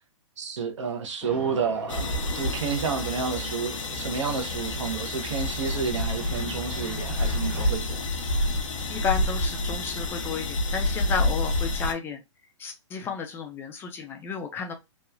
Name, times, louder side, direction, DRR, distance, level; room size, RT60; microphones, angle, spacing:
voice 1, 0.4-8.1, right 6 dB, 65° right, 0.8 m, -30 dB
sound 1, 1.2-7.7, right 1 dB, 10° right, 0.7 m, -43 dB
sound 2, 1.9-11.9, left 1 dB, 80° left, 0.6 m, -28 dB
voice 2, 8.9-12.2 12.6-14.7, left 6 dB, 15° left, 0.3 m, -32 dB
3.0 x 2.2 x 2.3 m
hypercardioid pair, 135°, 16 cm